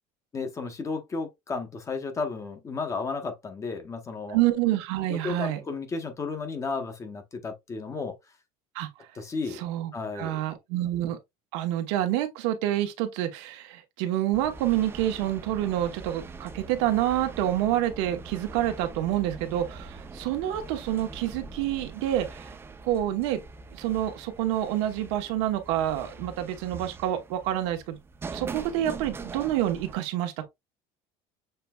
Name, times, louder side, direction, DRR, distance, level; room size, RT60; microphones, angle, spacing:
voice 1, 0.3-4.4 5.1-8.2 9.1-9.6 9.9-10.4, left 4 dB, 20° left, 0.9 m, -33 dB
voice 2, 4.3-5.6 8.7-8.9 9.5-11.2 11.5-22.5 22.8-23.4 23.7-28.0 28.3-30.5, right 13 dB, 90° right, 1.1 m, -28 dB
sound 1, 14.3-30.0, right 4 dB, 15° right, 0.5 m, -42 dB
6.7 x 3.3 x 2.3 m
cardioid pair, 155°, 14 cm